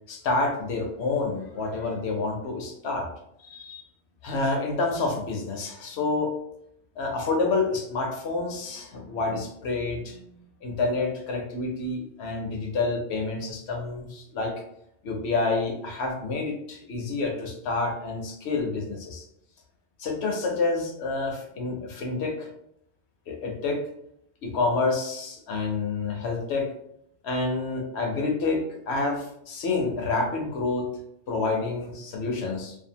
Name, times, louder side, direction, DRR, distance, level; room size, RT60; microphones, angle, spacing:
voice 1, 0.1-3.1 3.4-3.8 4.2-6.3 7.0-10.2 10.6-14.5 15.0-19.2 20.0-22.5 23.3-23.8 24.4-26.7 27.2-30.9 31.3-32.8, left 3 dB, 75° left, 2 dB, 0.9 m, -28 dB
2.6 x 2.3 x 2.7 m, 0.75 s
omnidirectional pair, 1.2 m